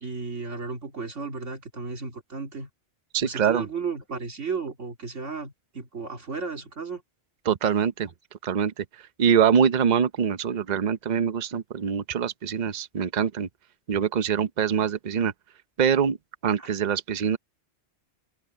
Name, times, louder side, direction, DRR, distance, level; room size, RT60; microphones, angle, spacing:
voice 1, 0.0-2.7 3.2-7.0 16.6-16.7, right 5 dB, 85° right, 2.9 m, -34 dB
voice 2, 3.1-3.7 7.4-8.1 8.4-8.9 9.2-13.5 13.9-15.3 15.8-16.2 16.4-17.4, right 7 dB, 45° right, 0.8 m, -24 dB
open air
omnidirectional pair, 1.2 m